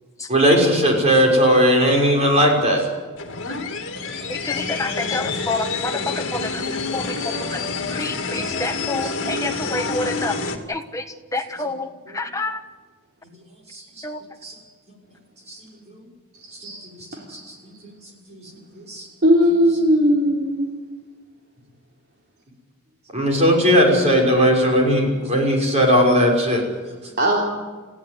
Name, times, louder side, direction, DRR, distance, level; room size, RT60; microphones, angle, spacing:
voice 1, 0.3-2.8 7.3-7.5 9.0-9.1 12.1-12.2 13.7-13.8 14.4-14.5 15.5-15.6 17.3-17.5 18.3-18.4 18.7-19.1 23.1-26.6, equal, 30° right, 0 dB, 6.0 m, -17 dB
sound 1, 3.2-10.6, left 4 dB, 55° left, 2.7 m, -27 dB
voice 2, 4.5-6.4 6.9-7.0 7.9-10.3 10.7-11.0 11.3-11.9 12.1-12.6 14.0-14.2, left 2 dB, 15° left, 4 dB, 1.6 m, -27 dB
voice 3, 16.3-16.8 17.3-17.4 19.2-20.7 27.2-27.4, equal, 50° right, -3 dB, 3.8 m, -18 dB
30.0 x 16.0 x 9.7 m, 1.3 s
head